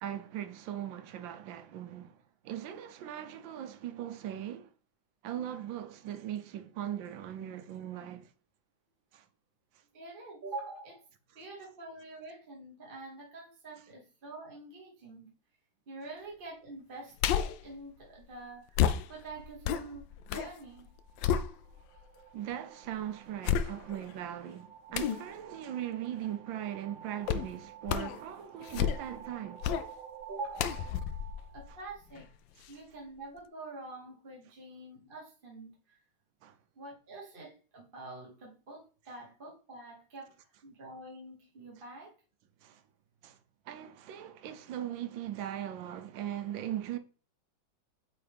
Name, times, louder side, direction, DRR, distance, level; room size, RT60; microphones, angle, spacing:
voice 1, 0.0-2.2 2.4-4.7 5.2-8.3 9.1-9.2 22.3-29.6 36.4-36.6 42.6-42.8 43.2-43.4 43.7-47.0, right 11 dB, 85° right, 1.5 m, -39 dB
voice 2, 9.9-11.0 11.3-15.3 15.9-18.8 19.1-20.9 30.3-30.7 31.5-32.3 32.7-36.0 36.7-40.3 40.6-42.2, right 2 dB, 35° right, 1.1 m, -46 dB
sound 1, 17.2-17.7 18.7-20.5 20.9-22.0 22.5-22.6 23.4-24.1 24.9-25.2 27.3-27.5 27.9-28.2 28.6-29.2 29.6-29.9 30.6-32.2 32.6-32.7, left 9 dB, 80° left, 1.3 m, -31 dB
sound 2, 20.6-32.3, right 9 dB, 55° right, 1.0 m, -52 dB
8.6 x 4.4 x 3.4 m
omnidirectional pair, 2.0 m